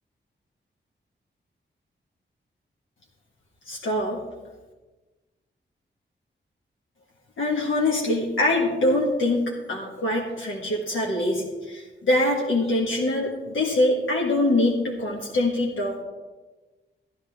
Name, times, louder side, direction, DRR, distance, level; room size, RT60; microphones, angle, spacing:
voice 1, 3.6-4.2 7.4-16.0, left 1 dB, 85° left, -2 dB, 1.6 m, -24 dB
14.5 x 10.5 x 3.6 m, 1.2 s
wide cardioid pair, 90°, 20 cm